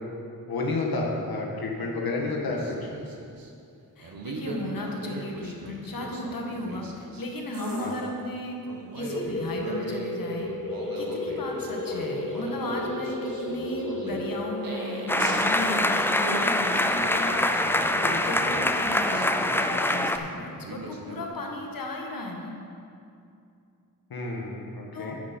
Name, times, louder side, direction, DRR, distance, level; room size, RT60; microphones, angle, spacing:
voice 1, 0.5-2.9 7.8-8.0 24.1-25.2, left 3 dB, 85° left, -1 dB, 1.7 m, -30 dB
sound 1, 2.5-3.5 4.0-7.3 7.5-8.1 8.7-10.1 10.4-16.5 17.0-20.3 20.6-21.3, right 3 dB, 70° right, 1.3 m, -39 dB
voice 2, 4.0-8.6 8.9-10.5 10.9-17.7 17.9-22.5 24.9-25.2, left 1 dB, 70° left, 0 dB, 1.6 m, -35 dB
sound 2, 9.0-18.3, left 1 dB, 35° left, 1.4 m, -34 dB
sound 3, 15.1-20.2, left 1 dB, 5° left, 0.5 m, -24 dB
10.0 x 8.9 x 4.5 m, 2.5 s
wide cardioid pair, 90°, 35 cm